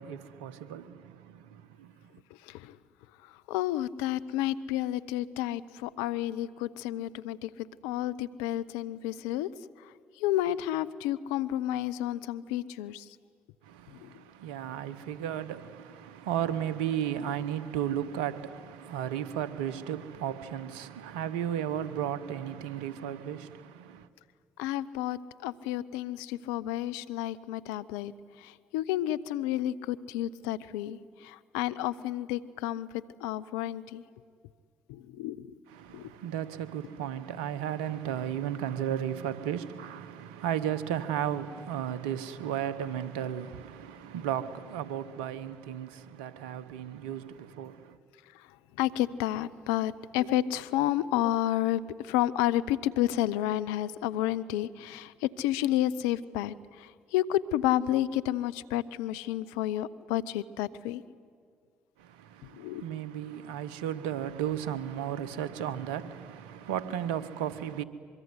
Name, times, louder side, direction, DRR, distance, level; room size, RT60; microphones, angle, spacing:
voice 1, 0.0-2.2 13.6-24.1 35.7-48.0 62.0-67.8, right 10 dB, 85° right, 0.9 m, -34 dB
voice 2, 2.4-2.8 3.2-9.5 9.8-13.1 13.9-14.1 24.6-28.1 28.4-32.9 33.2-34.0 34.9-35.5 35.9-36.1 48.3-48.5 48.8-61.0 62.5-62.8, left 13 dB, 85° left, 0.6 m, -31 dB
24.5 x 23.0 x 9.6 m
hypercardioid pair, 50°, 5 cm